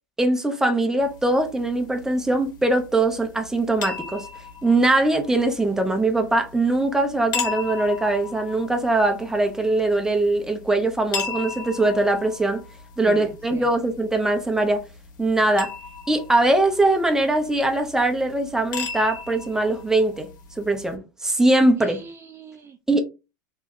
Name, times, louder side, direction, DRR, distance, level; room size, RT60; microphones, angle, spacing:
voice 1, 0.2-4.3 4.6-12.6 13.0-14.8 15.2-15.7 16.1-20.3 20.6-22.0 22.9-23.0, right 2 dB, 5° right, 0.8 m, -21 dB
sound 1, 1.0-21.0, left 6 dB, 80° left, 1.3 m, -37 dB
voice 2, 13.0-13.7 21.8-23.0, right 6 dB, 25° right, 0.5 m, -39 dB
3.1 x 2.9 x 3.8 m
supercardioid pair, 115°, 10 cm